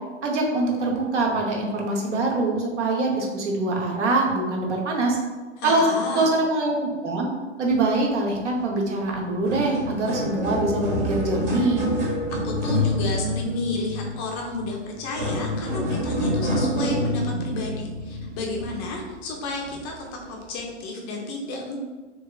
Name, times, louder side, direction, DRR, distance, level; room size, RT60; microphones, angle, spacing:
voice 1, 0.2-5.2 5.6-7.3 7.6-11.8, right 2 dB, 75° right, -1 dB, 0.8 m, -24 dB
voice 2, 5.6-6.3 12.3-21.8, left 2 dB, 20° left, 0 dB, 0.3 m, -32 dB
sound 1, 8.9-9.0 9.3-19.0 19.6-19.8 20.6-20.7, left 1 dB, 55° right, 1.2 m, -27 dB
2.8 x 2.7 x 2.2 m, 1.3 s
hypercardioid pair, 115°, 36 cm